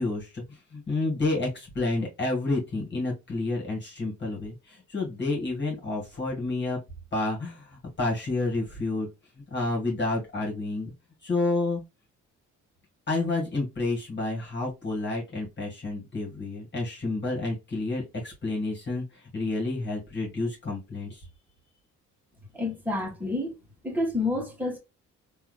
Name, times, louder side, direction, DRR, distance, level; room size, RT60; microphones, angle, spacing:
voice 1, 0.0-6.8 7.1-9.1 9.5-10.9 11.2-11.8 13.1-21.3, left 2 dB, 35° left, 2.0 m, -30 dB
voice 2, 22.5-23.6 23.8-24.8, left 2 dB, 5° right, 1.8 m, -29 dB
3.6 x 2.9 x 2.3 m
cardioid pair, 90°, 30 cm